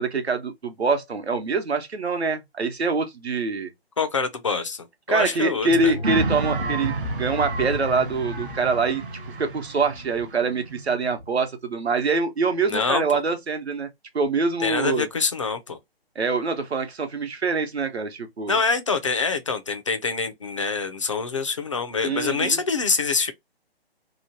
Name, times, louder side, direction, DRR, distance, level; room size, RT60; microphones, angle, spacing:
voice 1, 0.0-3.7 5.1-9.0 9.4-13.9 14.1-15.1 16.2-18.6 22.0-22.6, right 4 dB, 85° right, 0.9 m, -25 dB
voice 2, 4.0-5.9 12.7-13.0 14.6-15.8 18.5-23.3, left 4 dB, 30° left, 0.4 m, -25 dB
sound 1, 5.7-11.4, left 2 dB, 75° left, 0.7 m, -36 dB
sound 2, 6.0-11.3, right 3 dB, 55° right, 0.8 m, -31 dB
2.9 x 2.1 x 2.7 m
figure-of-eight pair, 150°, 31 cm